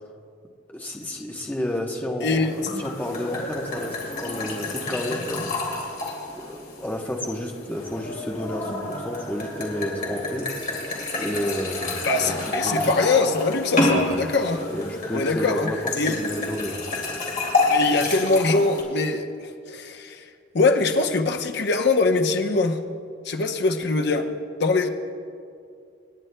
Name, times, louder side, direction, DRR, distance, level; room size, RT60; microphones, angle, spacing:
voice 1, 0.7-5.6 6.4-10.5 11.2-12.9 13.9-14.1 14.7-15.8 16.1-16.8, equal, 10° left, 0 dB, 0.9 m, -31 dB
voice 2, 2.2-2.5 12.0-14.6 15.1-15.7 16.0-16.2 17.7-20.2 20.5-22.8 23.2-24.3 24.6-24.9, left 3 dB, 60° left, 5 dB, 0.8 m, -22 dB
sound 1, 2.3-18.8, left 2 dB, 45° left, 2.3 m, -29 dB
sound 2, 9.1-13.9, right 2 dB, 25° right, 3.5 m, -46 dB
27.5 x 9.8 x 2.2 m, 2.4 s
head